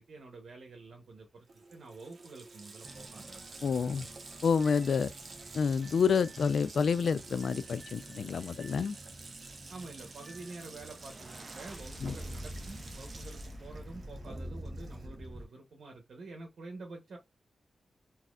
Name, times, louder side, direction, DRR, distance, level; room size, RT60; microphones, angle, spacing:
voice 1, 0.0-3.4 3.9-4.1 9.7-17.2, right 3 dB, 75° right, 0.9 m, -48 dB
Water tap faucet, 1.2-1.3 1.5-15.3, right 3 dB, 50° right, 0.9 m, -50 dB
sound 1, 2.8-15.5, equal, 20° right, 0.7 m, -47 dB
voice 2, 3.6-4.1 4.4-5.1 5.5-9.0 12.0-12.1, left 6 dB, 75° left, 0.3 m, -28 dB
4.1 x 2.8 x 2.4 m
wide cardioid pair, 115°, 0 cm